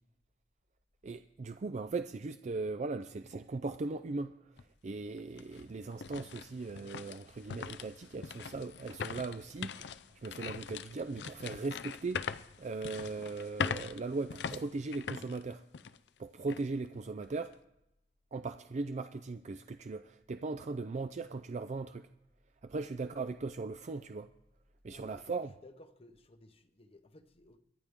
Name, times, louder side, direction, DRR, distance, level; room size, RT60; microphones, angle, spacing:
voice 1, 1.0-15.7 16.2-17.6 18.3-22.1 22.6-24.3 24.8-25.5, right 3 dB, 40° right, 0.4 m, -39 dB
sound 1, 4.6-4.7 5.2-16.1 16.5-16.6 17.2-17.5, left 6 dB, 70° left, 0.5 m, -42 dB
voice 2, 24.9-25.4 25.6-27.6, left 1 dB, 35° left, 0.9 m, -57 dB
23.5 x 9.8 x 3.6 m
head